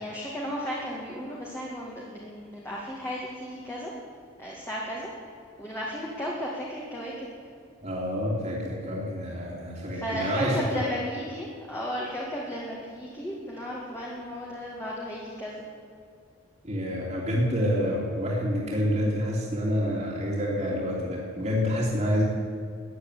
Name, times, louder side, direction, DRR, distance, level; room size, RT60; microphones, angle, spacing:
voice 1, 0.0-3.9 4.4-5.1 5.6-7.3 9.9-15.6, equal, 10° left, -4 dB, 2.2 m, -34 dB
voice 2, 7.8-10.8 16.6-22.2, equal, 35° right, -4 dB, 2.8 m, -28 dB
14.5 x 9.7 x 9.8 m, 2.3 s
head